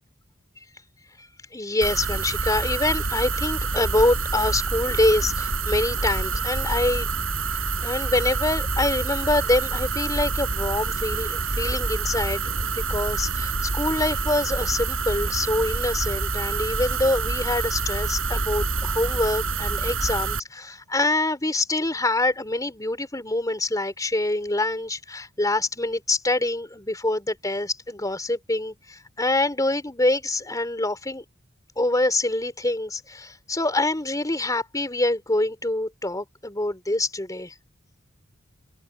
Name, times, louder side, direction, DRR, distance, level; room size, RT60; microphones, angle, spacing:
voice 1, 1.5-7.1 7.8-31.2 31.8-37.5, left 2 dB, 20° left, 4.0 m, -25 dB
sound 1, 1.8-20.4, right 4 dB, 90° right, 5.1 m, -27 dB
head